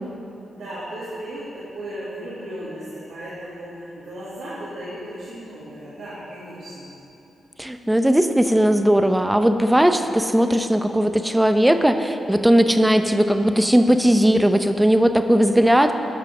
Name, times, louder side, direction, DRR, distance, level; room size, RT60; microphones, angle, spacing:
voice 1, 0.4-6.9, right 1 dB, 85° right, -11 dB, 2.4 m, -35 dB
voice 2, 7.6-15.9, equal, 10° right, 8 dB, 0.7 m, -18 dB
12.5 x 5.6 x 6.1 m, 2.8 s
cardioid pair, 55°, 0 cm